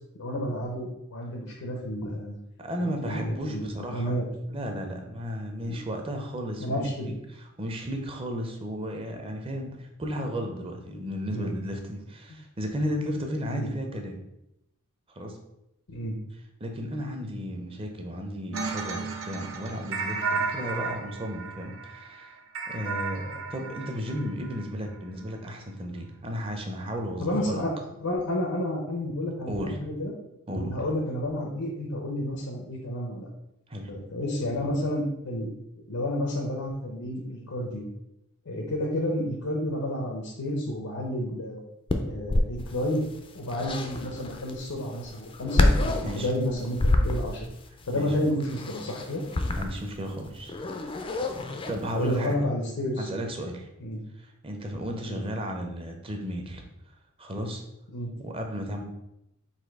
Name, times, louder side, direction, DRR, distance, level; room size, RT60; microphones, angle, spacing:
voice 1, 0.2-2.4 2.8-3.7 3.9-4.3 5.6-5.8 6.6-7.2 11.3-11.5 13.5-13.7 15.9-16.2 27.2-27.7 28.0-30.1 30.6-33.3 33.9-35.5 35.9-37.8 38.4-41.6 42.0-43.1 43.3-47.5 47.9-49.2 51.9-53.1 53.8-54.0 54.9-55.2 57.9-58.1, left 1 dB, 90° left, -1 dB, 0.8 m, -30 dB
voice 2, 2.6-4.2 4.5-7.1 7.6-14.2 15.1-15.4 16.6-22.4 22.7-27.6 29.5-29.8 30.5-30.8 33.7-34.0 43.6-43.7 46.0-46.3 47.9-48.1 49.6-50.5 51.5-52.4 53.0-53.7 54.2-56.6 57.2-57.6 58.2-58.8, equal, 25° right, 3 dB, 0.6 m, -34 dB
sound 1, 18.5-24.7, right 4 dB, 70° right, 0.6 m, -33 dB
sound 2, 41.9-52.3, left 2 dB, 25° left, 0.3 m, -28 dB
4.2 x 2.7 x 4.6 m, 0.85 s
head